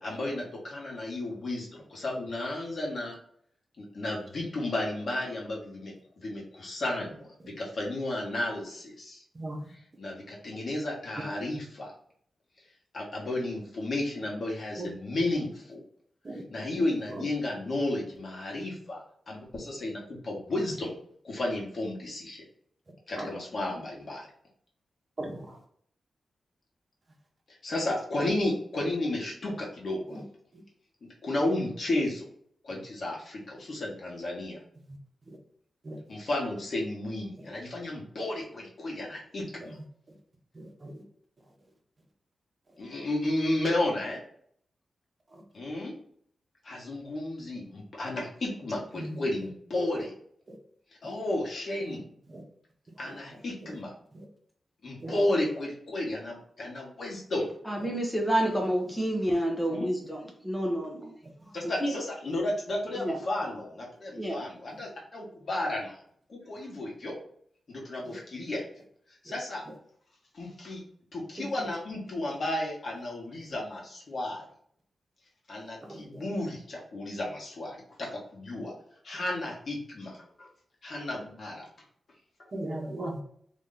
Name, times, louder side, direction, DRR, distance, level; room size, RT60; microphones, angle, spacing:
voice 1, 0.0-3.2 3.8-9.2 9.7-11.9 12.9-15.8 16.5-20.9 21.2-22.4 23.1-24.3 27.5-30.2 31.2-32.3 32.6-34.6 36.1-39.8 42.8-44.2 45.5-45.9 46.6-50.1 51.0-52.0 53.0-53.9 54.8-57.5 59.7-59.9 61.5-66.0 66.3-67.1 67.7-68.6 69.2-69.6 70.3-70.8 71.1-74.5 75.5-78.7 79.0-80.5 80.8-81.7, left 1 dB, 55° left, -3 dB, 1.6 m, -33 dB
voice 2, 40.6-40.9 49.0-49.1 55.0-55.1 75.9-76.0 82.5-83.2, right 1 dB, 40° right, 0 dB, 1.1 m, -36 dB
voice 3, 57.7-61.1 61.8-61.9 63.0-63.2 64.2-64.4, right 1 dB, 5° left, 0 dB, 0.9 m, -29 dB
3.1 x 2.9 x 3.8 m, 0.64 s
wide cardioid pair, 95°, 0 cm